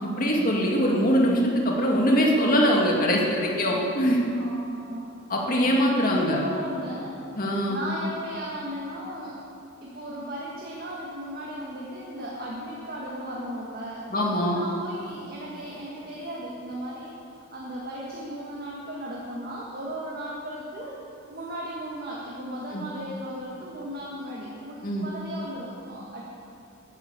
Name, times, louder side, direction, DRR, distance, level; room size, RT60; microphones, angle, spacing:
voice 1, 0.0-4.2 5.3-6.4 7.4-7.8 14.1-14.6 22.7-22.8 24.8-25.1, equal, 40° left, -1 dB, 2.2 m, -22 dB
voice 2, 4.3-5.1 6.0-7.2 7.7-9.4 9.8-14.1 14.5-17.2 17.5-21.0 21.3-26.2, right 1 dB, 45° right, -4 dB, 1.8 m, -36 dB
15.0 x 10.5 x 7.0 m, 2.6 s
head